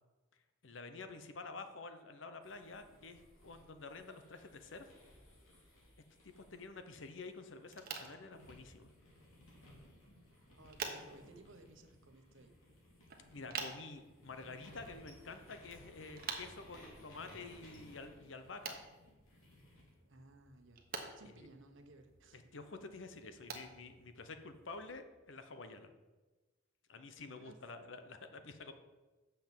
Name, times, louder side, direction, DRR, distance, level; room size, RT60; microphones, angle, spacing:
voice 1, 0.6-4.9 6.2-8.9 13.3-18.8 21.4-21.5 22.3-25.9 26.9-28.7, left 3 dB, 65° left, 8 dB, 0.9 m, -49 dB
sound 1, 2.4-7.8 8.3-19.9, left 1 dB, 90° left, 3.1 m, -60 dB
sound 2, 7.6-24.9, right 5 dB, 50° right, 1.1 m, -51 dB
voice 2, 10.5-12.6 20.1-20.8 21.2-22.4 27.3-27.6, right 2 dB, 70° right, 6 dB, 1.1 m, -59 dB
6.9 x 6.0 x 7.5 m, 1.2 s
head